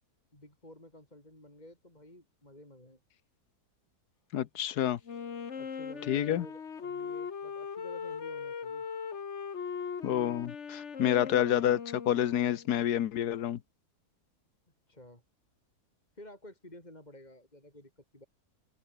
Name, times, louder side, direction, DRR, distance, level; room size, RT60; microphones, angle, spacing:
voice 1, 0.3-3.0 5.6-8.9 14.9-15.2 16.1-18.3, left 1 dB, 25° left, 5.4 m, -52 dB
voice 2, 4.3-5.0 6.1-6.4 10.0-13.6, left 11 dB, 75° left, 1.5 m, -28 dB
Wind instrument woodwind instrument, 5.0-12.7, left 6 dB, 50° left, 1.6 m, -39 dB
open air
omnidirectional pair, 1.7 m